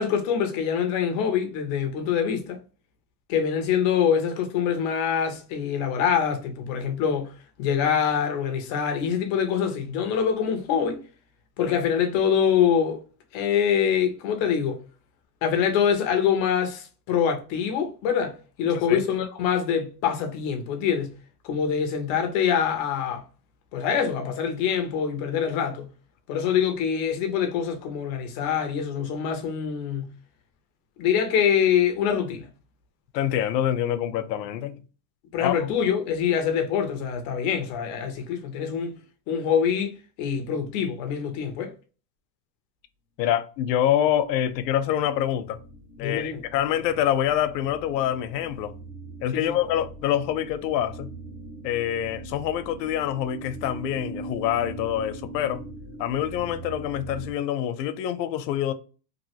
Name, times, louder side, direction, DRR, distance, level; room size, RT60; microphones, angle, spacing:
voice 1, 0.0-2.6 3.3-7.3 7.6-11.0 11.6-13.0 13.3-14.8 15.4-21.1 21.4-23.2 23.7-25.9 26.3-30.1 31.0-32.5 35.3-38.9 39.3-41.7 46.0-46.4 49.3-49.5, left 8 dB, 30° left, 0.4 m, -25 dB
voice 2, 33.1-34.8 35.4-35.7 43.2-45.6 46.0-48.7 49.2-51.1 51.6-55.6 56.0-58.7, left 11 dB, 85° left, 0.7 m, -26 dB
sound 1, 44.0-57.3, right 2 dB, 60° right, 1.3 m, -41 dB
3.1 x 2.5 x 2.8 m
supercardioid pair, 160°, 49 cm